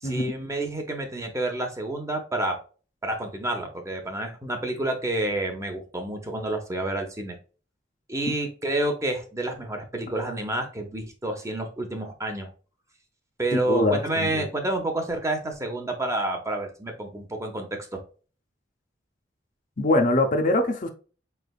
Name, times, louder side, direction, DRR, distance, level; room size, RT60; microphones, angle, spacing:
voice 1, 0.0-2.6 3.0-7.4 8.1-12.5 13.4-18.0, right 2 dB, 15° right, 0.9 m, -29 dB
voice 2, 13.7-14.5 19.8-20.9, left 2 dB, 45° left, 0.7 m, -23 dB
5.0 x 3.3 x 2.4 m
head